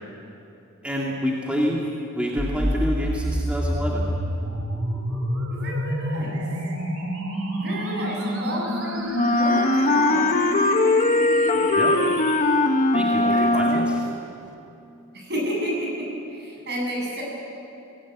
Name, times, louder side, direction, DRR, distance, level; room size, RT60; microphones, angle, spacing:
voice 1, 0.8-4.0 11.5-12.0 12.9-14.0, equal, 5° right, -3 dB, 2.2 m, -27 dB
sound 1, 2.4-12.4, equal, 85° right, 4.5 m, -28 dB
voice 2, 5.5-6.4 7.6-10.4 13.3-13.8 15.1-17.2, equal, 50° right, -2 dB, 8.0 m, -31 dB
Wind instrument woodwind instrument, 9.1-14.2, left 2 dB, 35° left, 1.0 m, -20 dB
22.0 x 17.5 x 9.7 m, 2.7 s
head